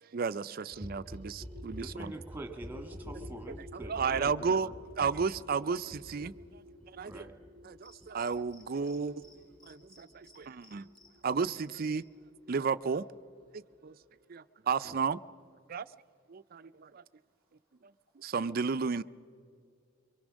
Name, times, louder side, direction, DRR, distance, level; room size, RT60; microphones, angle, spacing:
voice 1, 0.0-2.1 3.7-4.7 5.0-6.3 7.0-7.3 7.6-9.3 9.7-10.8 11.2-12.0 12.5-13.0 13.5-13.9 14.3-15.2 15.7-15.9 16.3-17.0 18.2-19.0, right 5 dB, 50° right, 0.5 m, -33 dB
sound 1, 0.7-12.2 12.5-12.6 12.8-12.9 13.1-13.2 13.4-13.5 13.7-13.8 14.0-14.1, left 1 dB, 10° left, 7.1 m, -47 dB
voice 2, 1.8-4.7 7.0-7.4 14.8-15.0, right 2 dB, 10° right, 1.6 m, -45 dB
voice 3, 6.3-7.2 7.7-8.2 9.8-11.3 13.6-14.7 15.6-16.9 17.4-17.5 18.2-18.3, right 1 dB, 30° left, 5.5 m, -80 dB
Cricket, 7.8-9.0 9.2-9.3 9.6-11.1 11.4-11.9, left 3 dB, 45° left, 6.3 m, -58 dB
23.5 x 23.5 x 6.3 m
head